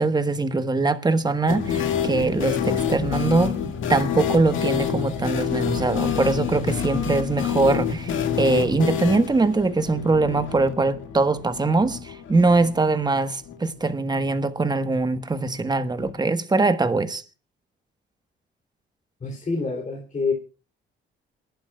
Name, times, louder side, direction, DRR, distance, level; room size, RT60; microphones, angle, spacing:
voice 1, 0.0-3.5 3.9-17.2, right 3 dB, 20° right, 1.3 m, -22 dB
sound 1, 1.5-13.2 13.5-13.6 13.8-13.9 16.0-16.1, left 8 dB, 80° left, 2.0 m, -27 dB
voice 2, 19.2-20.3, left 4 dB, 40° left, 3.0 m, -27 dB
27.5 x 11.5 x 2.3 m
cardioid pair, 90°, 20 cm